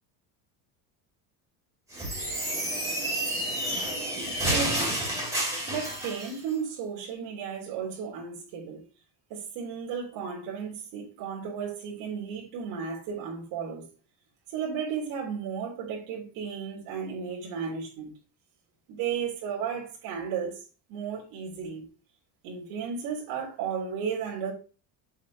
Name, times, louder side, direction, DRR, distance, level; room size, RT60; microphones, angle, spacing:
sound 1, 1.9-6.3, right 1 dB, 10° right, 2.8 m, -30 dB
voice 1, 4.4-4.9 5.2-5.3 5.7-8.8 9.3-13.8 14.5-18.1 18.9-20.6 20.9-21.9 22.4-24.5, right 6 dB, 85° right, 3.8 m, -34 dB
7.5 x 7.4 x 2.9 m
cardioid pair, 180°, 41 cm